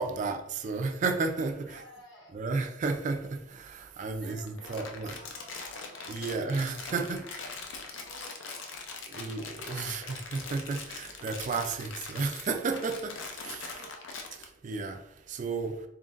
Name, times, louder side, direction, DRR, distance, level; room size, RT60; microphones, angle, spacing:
voice 1, 0.0-1.8 2.3-5.1 6.1-7.2 9.1-13.1 13.5-13.6 14.6-15.0 15.3-15.7, right 4 dB, 40° right, 0.3 m, -32 dB
voice 2, 1.7-2.3 4.1-6.4 6.8-7.2 8.0-9.3 9.7-9.8 13.7-14.2, equal, 65° left, 1.0 m, -53 dB
Crumpling crinkling, 4.4-14.4, left 4 dB, 80° left, 0.6 m, -42 dB
3.8 x 3.7 x 2.5 m
head